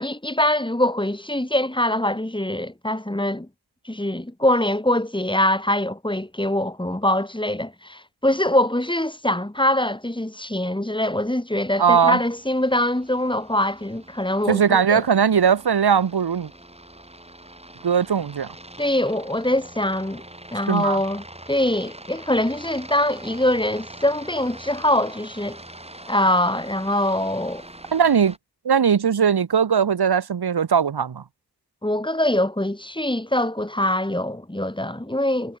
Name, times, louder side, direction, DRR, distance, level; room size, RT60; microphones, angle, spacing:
voice 1, 0.0-3.5 3.8-15.0 18.8-20.2 20.5-25.6 26.1-27.6 31.8-35.6, left 1 dB, 15° left, 4.4 m, -23 dB
voice 2, 11.8-12.2 14.5-16.5 17.8-18.5 20.7-21.0 27.9-28.3 28.6-31.2, right 7 dB, 85° right, 1.2 m, -19 dB
Aircraft, 12.1-28.4, right 1 dB, 15° right, 4.2 m, -43 dB
wide cardioid pair, 90°, 37 cm